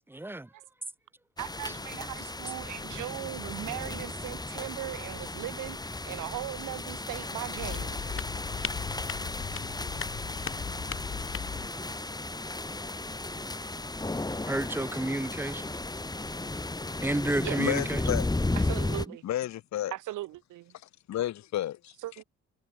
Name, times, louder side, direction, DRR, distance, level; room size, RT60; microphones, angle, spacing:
voice 1, 0.1-0.5 14.5-15.8 17.0-18.0, right 1 dB, 5° right, 1.3 m, -30 dB
sound 1, 1.4-19.1, left 2 dB, 15° left, 2.5 m, -35 dB
voice 2, 1.4-8.2 17.4-17.7 18.6-19.2 19.9-20.7 22.0-22.2, right 16 dB, 90° right, 4.7 m, -39 dB
sound 2, 7.6-11.7, left 7 dB, 45° left, 3.6 m, -37 dB
voice 3, 17.6-18.3 19.2-19.9 21.1-21.9, left 12 dB, 65° left, 1.1 m, -31 dB
cardioid pair, 90°, 30 cm